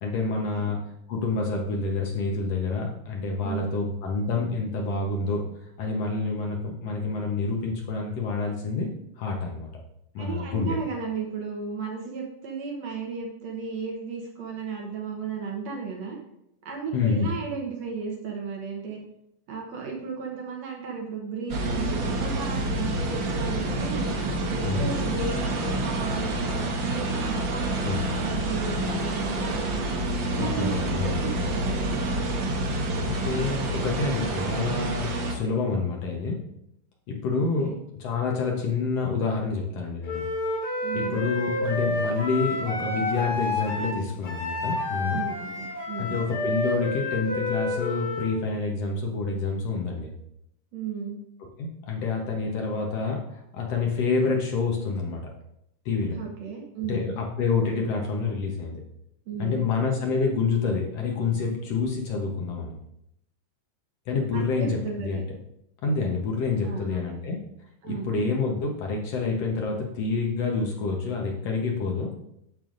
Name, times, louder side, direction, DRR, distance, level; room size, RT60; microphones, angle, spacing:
voice 1, 0.0-8.9 9.2-9.7 10.1-10.8 16.9-17.3 24.6-24.9 27.8-28.1 30.4-31.5 33.0-36.4 37.1-37.7 38.0-40.2 40.9-45.2 46.0-50.1 51.6-55.2 55.8-56.2 56.9-58.8 59.4-62.7 64.1-64.8 65.0-65.2 65.8-67.4 67.8-72.1, left 4 dB, 65° left, 0 dB, 1.7 m, -28 dB
voice 2, 3.4-3.8 10.2-16.2 16.6-19.0 19.5-24.1 24.5-29.9 30.3-32.0 37.3-37.8 40.8-41.3 45.1-46.2 50.7-51.2 56.2-57.1 59.3-59.7 64.3-65.2 66.6-67.0 67.8-68.1, right 5 dB, 65° right, 0 dB, 1.9 m, -35 dB
sound 1, 21.5-35.3, right 1 dB, 90° right, 1.0 m, -28 dB
Wind instrument woodwind instrument, 40.0-48.4, left 2 dB, 45° left, 2.9 m, -30 dB
9.0 x 6.8 x 2.5 m, 0.78 s
omnidirectional pair, 3.7 m